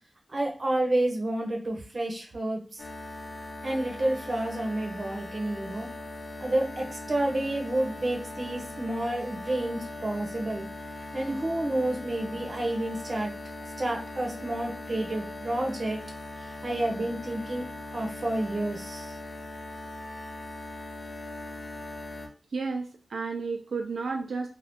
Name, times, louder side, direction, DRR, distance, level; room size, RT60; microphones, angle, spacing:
voice 1, 0.3-2.8 3.6-5.9 6.4-10.7 11.1-13.3 13.8-16.0 16.6-19.1, right 1 dB, 45° right, 1 dB, 0.7 m, -30 dB
sound 1, 2.8-22.3, left 2 dB, 60° left, 0.7 m, -40 dB
voice 2, 22.5-24.5, right 4 dB, 90° right, 3 dB, 0.4 m, -32 dB
2.6 x 2.4 x 3.4 m, 0.35 s
wide cardioid pair, 100°, 0 cm